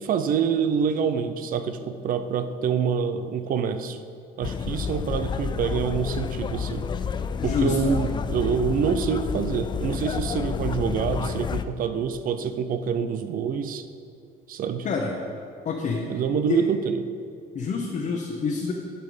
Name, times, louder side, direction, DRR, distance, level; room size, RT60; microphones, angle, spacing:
voice 1, 0.0-4.0 4.4-6.9 7.4-13.9 14.5-14.9 16.1-17.0, right 7 dB, 55° right, 10 dB, 0.6 m, -26 dB
sound 1, 4.4-11.6, left 6 dB, 25° left, 0.3 m, -30 dB
voice 2, 7.4-7.9 14.8-15.2 15.6-16.0 16.5-16.6 17.5-18.7, left 5 dB, 45° left, -1 dB, 1.0 m, -26 dB
11.0 x 5.7 x 5.0 m, 2.4 s
cardioid pair, 110°, 17 cm